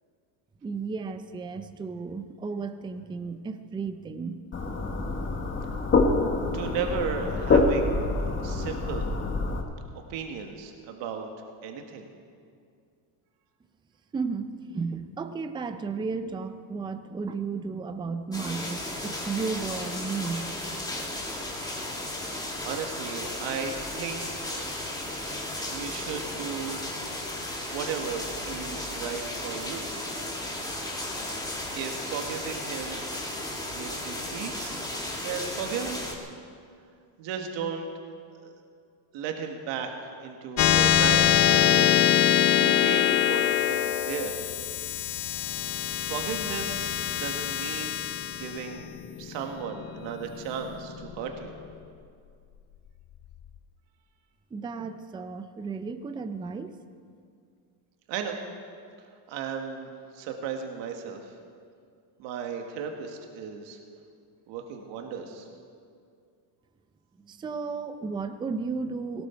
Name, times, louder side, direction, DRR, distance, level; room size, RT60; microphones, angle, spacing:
voice 1, 0.6-4.5 14.1-20.5 54.5-56.8 67.2-69.3, right 4 dB, 10° right, 10 dB, 0.5 m, -34 dB
sound 1, 4.5-9.6, left 3 dB, 25° left, 1.5 m, -26 dB
voice 2, 6.5-8.1 8.4-9.1 10.1-11.3 11.6-12.1 22.6-24.5 25.2-25.4 25.7-26.9 27.7-29.9 31.7-33.0 33.6-34.8 35.1-36.0 37.2-38.5 39.1-39.9 40.2-42.1 42.6-44.3 46.0-48.9 49.2-51.5 58.1-58.4 59.3-61.4 62.2-63.8 64.5-65.5, right 6 dB, 70° right, 3 dB, 1.9 m, -35 dB
sound 2, 18.3-36.2, left 1 dB, 10° left, 1.9 m, -35 dB
sound 3, 40.6-51.4, left 11 dB, 50° left, 0.8 m, -24 dB
18.5 x 17.5 x 4.5 m, 2.3 s
cardioid pair, 140°, 46 cm